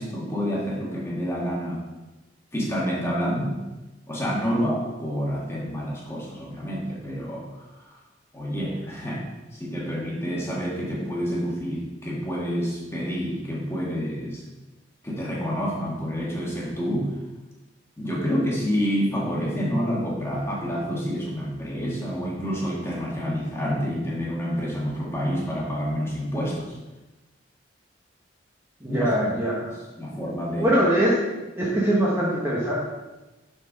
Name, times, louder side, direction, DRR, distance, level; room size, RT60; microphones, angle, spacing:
voice 1, 0.0-1.8 2.5-3.6 4.1-7.9 8.3-9.3 9.5-14.4 15.0-17.1 18.0-26.8 28.9-29.1 30.0-30.8, equal, 15° left, -4 dB, 1.7 m, -28 dB
voice 2, 28.8-29.7 30.6-31.1 31.6-32.7, right 1 dB, 15° right, -5 dB, 1.1 m, -22 dB
6.8 x 4.5 x 5.4 m, 1.1 s
head